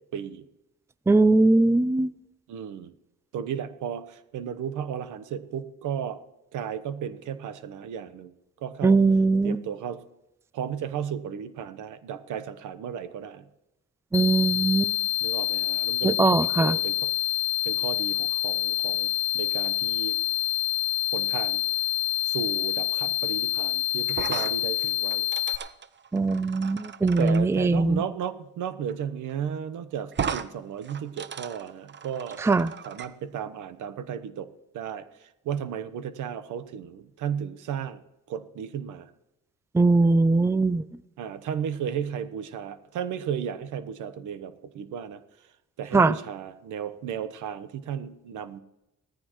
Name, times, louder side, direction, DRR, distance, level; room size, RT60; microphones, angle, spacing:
voice 1, 0.1-0.5 2.5-2.9 3.3-6.2 6.5-8.3 8.6-9.0 9.4-10.0 10.5-13.4 15.2-17.1 17.6-19.1 19.3-20.2 21.1-21.6 22.2-25.2 27.2-32.4 32.9-34.5 34.7-38.0 38.3-39.1 41.2-45.2 45.8-48.6, right 8 dB, 80° right, 12 dB, 1.1 m, -34 dB
voice 2, 1.1-2.1 8.8-9.6 14.1-14.9 16.0-16.8 26.1-28.0 32.4-32.7 39.7-40.8 45.9-46.2, right 3 dB, 10° right, 17 dB, 0.4 m, -21 dB
sound 1, 14.1-25.6, left 15 dB, 65° left, 1.3 m, -27 dB
sound 2, 24.1-27.4 28.9-29.0 29.3-29.4 30.1-30.5 30.8-33.1, right 7 dB, 35° right, 0.8 m, -36 dB
17.5 x 14.0 x 3.1 m, 0.91 s
cardioid pair, 90°, 30 cm